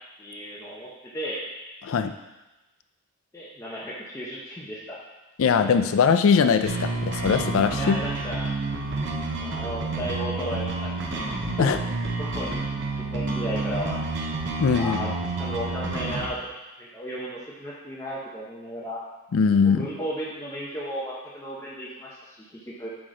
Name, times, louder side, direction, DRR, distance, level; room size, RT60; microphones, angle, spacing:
voice 1, 0.2-1.5 3.3-5.0 7.8-8.5 9.4-11.2 11.6-11.7 12.2-14.3 14.7-15.1 15.4-16.4 16.8-19.0 19.6-22.9, equal, 15° left, -6 dB, 0.7 m, -35 dB
voice 2, 1.8-2.1 5.4-8.0 11.6-11.8 14.6-15.1 19.3-19.9, left 6 dB, 65° left, 9 dB, 0.4 m, -21 dB
sound 1, 6.7-16.3, right 3 dB, 55° right, 0.8 m, -29 dB
6.0 x 4.9 x 3.7 m, 1.1 s
head